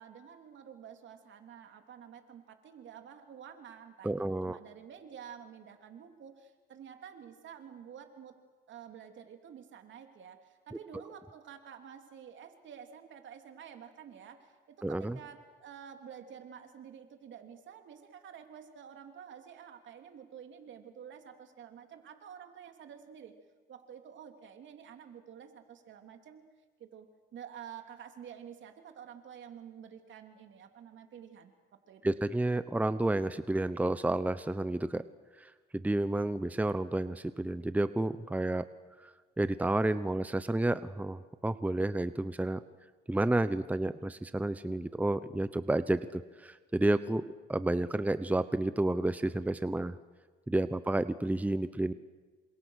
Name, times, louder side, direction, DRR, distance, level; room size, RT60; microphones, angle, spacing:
voice 1, 0.0-8.4 8.7-23.3 23.7-26.4 26.8-32.1, right 8 dB, 70° right, 5 dB, 3.0 m, -50 dB
voice 2, 4.0-4.6 14.8-15.2 32.0-35.0 35.4-38.7 39.4-42.6 43.1-47.2 47.5-49.9 50.5-51.9, right 2 dB, 5° right, 13 dB, 0.9 m, -30 dB
27.5 x 26.0 x 6.5 m, 1.4 s
cardioid pair, 90°, 20 cm